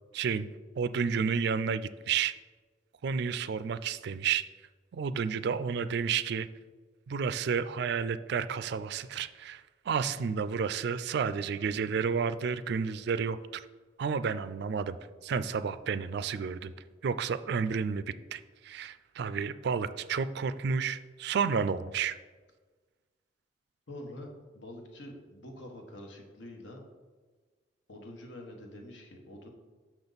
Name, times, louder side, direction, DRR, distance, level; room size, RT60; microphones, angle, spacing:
voice 1, 0.1-0.5 0.8-2.3 3.0-4.4 4.9-6.5 7.1-13.6 14.0-15.0 15.2-16.7 17.0-22.2, right 6 dB, 65° right, 14 dB, 0.3 m, -31 dB
voice 2, 23.9-26.8 27.9-29.5, left 1 dB, 85° left, 1 dB, 1.3 m, -46 dB
6.9 x 6.1 x 4.0 m, 1.4 s
head